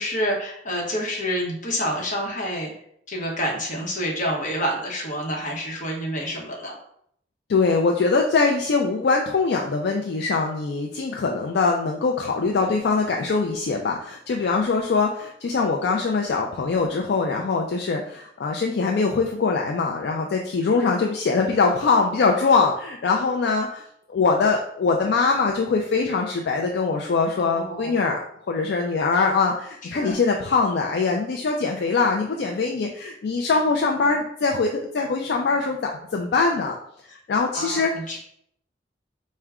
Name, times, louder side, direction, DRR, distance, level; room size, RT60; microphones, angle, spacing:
voice 1, 0.0-2.7 3.1-6.8 27.4-27.9 29.8-30.2 37.5-38.2, equal, 45° left, -1 dB, 1.0 m, -28 dB
voice 2, 7.5-23.8 24.1-28.2 28.5-36.7 37.1-37.9, left 4 dB, 65° left, 1 dB, 0.4 m, -22 dB
4.6 x 2.2 x 3.5 m, 0.69 s
head